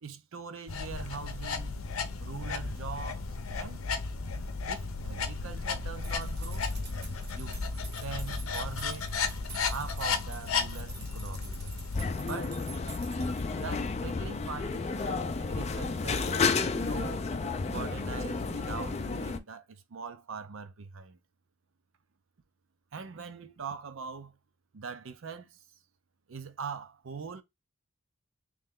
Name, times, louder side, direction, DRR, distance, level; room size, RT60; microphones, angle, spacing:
voice 1, 0.0-1.8 2.2-3.8 4.7-6.7 7.3-7.6 8.0-9.2 9.7-11.6 12.2-12.7 13.5-17.3 17.7-21.2 22.9-24.4 24.7-25.6 26.3-27.4, right 5 dB, 65° right, 0.5 m, -42 dB
sound 1, 0.7-12.1, left 4 dB, 80° left, 0.7 m, -34 dB
sound 2, 6.0-13.7, right 4 dB, 50° right, 1.0 m, -49 dB
sound 3, 11.9-19.4, left 4 dB, 30° left, 0.4 m, -31 dB
3.3 x 3.1 x 3.6 m
head